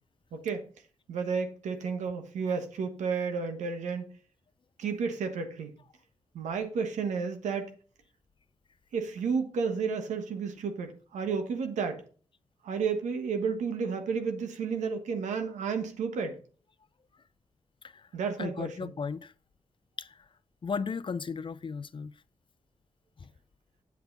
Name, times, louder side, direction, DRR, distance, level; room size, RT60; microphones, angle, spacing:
voice 1, 0.3-0.7 1.1-4.1 4.8-5.8 6.3-7.7 8.9-12.0 12.6-16.4 18.1-18.9, right 5 dB, 85° right, 1.3 m, -32 dB
voice 2, 18.4-19.3 20.0-20.1 20.6-22.1 23.2-23.3, left 5 dB, 45° left, 0.6 m, -35 dB
8.2 x 8.1 x 4.0 m
supercardioid pair, 45°, 12 cm